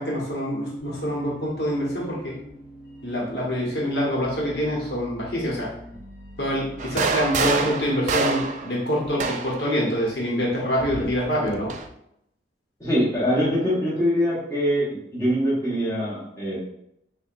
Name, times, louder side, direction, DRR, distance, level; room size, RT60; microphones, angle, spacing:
voice 1, 0.0-2.4 3.0-5.7 6.4-11.7, equal, 65° left, -4 dB, 1.1 m, -26 dB
sound 1, 0.8-7.6, equal, 10° right, 0.8 m, -44 dB
sound 2, 6.8-9.7 10.8-11.9, right 4 dB, 40° right, 0.3 m, -26 dB
voice 2, 12.8-16.6, equal, 15° left, -7 dB, 1.1 m, -23 dB
6.1 x 2.2 x 2.5 m, 0.77 s
head